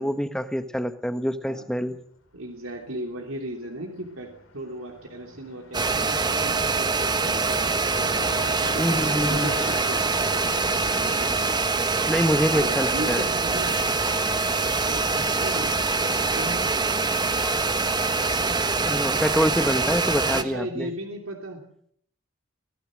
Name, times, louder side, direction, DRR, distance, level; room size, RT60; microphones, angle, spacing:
voice 1, 0.0-2.0 8.8-9.5 12.1-13.2 18.8-20.9, equal, 5° left, 9 dB, 1.2 m, -26 dB
voice 2, 2.3-8.2 8.6-8.9 9.3-11.6 12.5-13.7 14.8-16.6 20.3-21.6, right 1 dB, 85° right, 2 dB, 3.1 m, -37 dB
Car passing by, 2.9-3.2 3.4-10.4, left 2 dB, 85° left, 5.6 m, -40 dB
sound 1, 5.7-20.4, right 3 dB, 20° right, 1.1 m, -24 dB
23.5 x 17.5 x 6.4 m, 0.64 s
head